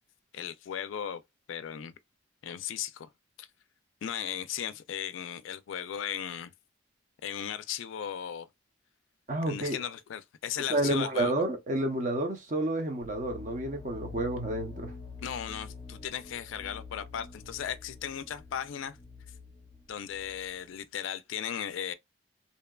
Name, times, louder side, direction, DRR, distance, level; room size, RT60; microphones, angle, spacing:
voice 1, 0.3-1.2 1.5-1.9 2.4-3.1 3.4-3.5 4.0-6.5 7.2-8.5 9.5-11.3 15.2-19.0 19.9-21.9, left 9 dB, 75° left, 0.3 m, -36 dB
voice 2, 9.3-9.8 10.7-14.9, right 1 dB, 40° right, 0.6 m, -30 dB
sound 1, 13.0-20.7, left 4 dB, 25° left, 0.6 m, -47 dB
2.7 x 2.2 x 2.2 m
head